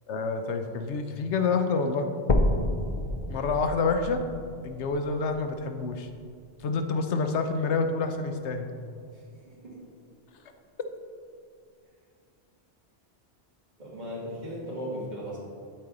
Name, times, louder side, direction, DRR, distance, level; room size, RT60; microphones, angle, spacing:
voice 1, 0.1-2.1 3.3-4.2 4.6-6.1 6.6-8.7, left 4 dB, 80° left, 6 dB, 1.0 m, -28 dB
sound 1, 2.3-6.3 6.9-7.0 7.5-7.6 8.0-8.1 8.9-9.0, left 2 dB, 45° left, 0.4 m, -30 dB
voice 2, 13.8-15.4, equal, 40° right, -7 dB, 2.2 m, -36 dB
12.0 x 4.5 x 3.8 m, 2.3 s
omnidirectional pair, 1.2 m